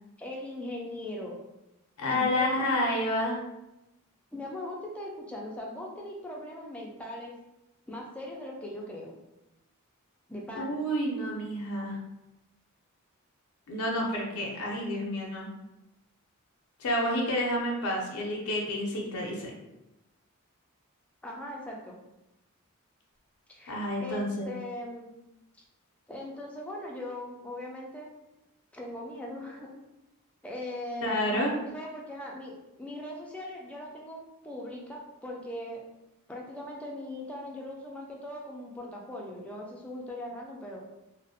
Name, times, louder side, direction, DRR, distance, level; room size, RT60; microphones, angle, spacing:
voice 1, 0.2-1.4 2.1-2.6 4.3-7.4 7.9-9.1 10.3-10.8 21.2-22.0 23.5-25.1 26.1-28.1 28.7-29.7 30.4-35.8 36.3-40.8, left 1 dB, 5° left, -2 dB, 0.3 m, -40 dB
voice 2, 2.0-3.4 10.5-12.0 13.7-15.5 16.8-19.5 23.7-24.5 31.0-31.6, left 1 dB, 80° left, -1 dB, 0.5 m, -29 dB
2.4 x 2.1 x 2.6 m, 0.95 s
head